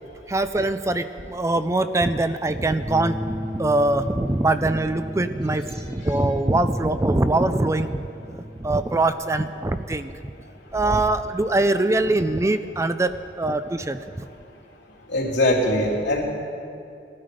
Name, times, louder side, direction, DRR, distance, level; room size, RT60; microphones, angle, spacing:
voice 1, 0.3-10.2 10.7-13.1 13.4-14.3, right 2 dB, 15° right, 10 dB, 0.4 m, -23 dB
Bass guitar, 2.9-9.1, left 1 dB, ahead, 0.9 m, -36 dB
voice 2, 15.1-16.2, left 1 dB, 85° left, -4 dB, 3.3 m, -21 dB
19.0 x 12.5 x 5.2 m, 2.6 s
head